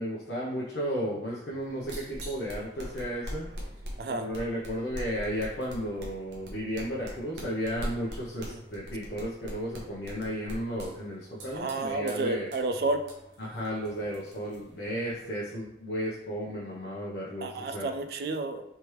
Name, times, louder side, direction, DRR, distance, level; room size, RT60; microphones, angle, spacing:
voice 1, 0.0-3.4 4.1-12.5 13.4-17.9, equal, 80° left, -6 dB, 0.7 m, -34 dB
sound 1, 1.5-15.3, equal, 75° right, 0.8 m, -43 dB
voice 2, 4.0-4.3 8.5-8.6 11.5-13.0 17.4-18.6, right 2 dB, 60° right, 8 dB, 0.3 m, -31 dB
3.3 x 3.0 x 3.1 m, 0.85 s
head